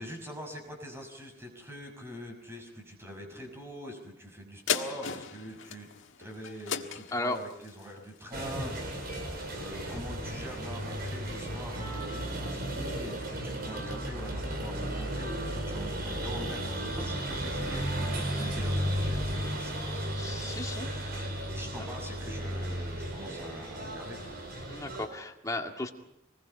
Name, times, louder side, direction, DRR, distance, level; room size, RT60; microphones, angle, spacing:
voice 1, 0.0-5.9 6.2-24.4, equal, 15° right, 2 dB, 6.0 m, -44 dB
sound 1, 4.7-9.4 9.9-10.0, left 7 dB, 75° left, 1.7 m, -37 dB
sound 2, 8.3-25.1, right 1 dB, 55° right, 4.8 m, -34 dB
voice 2, 20.2-20.9 24.7-25.9, left 2 dB, 20° left, 2 dB, 2.2 m, -35 dB
26.0 x 20.5 x 5.7 m, 0.81 s
head